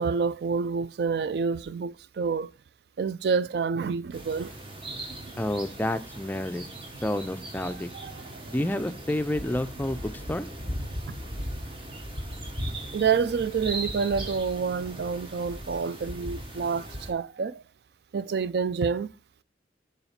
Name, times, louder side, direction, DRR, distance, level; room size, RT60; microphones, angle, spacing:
voice 1, 0.0-2.5 3.0-4.5 7.9-8.1 12.9-17.6 18.1-19.1, right 5 dB, 60° right, 0.3 m, -28 dB
sound 1, 4.1-17.1, right 1 dB, 30° right, 1.1 m, -38 dB
voice 2, 5.4-6.7 7.0-7.9 8.5-10.5, left 1 dB, 10° left, 0.4 m, -29 dB
7.0 x 4.0 x 5.7 m
head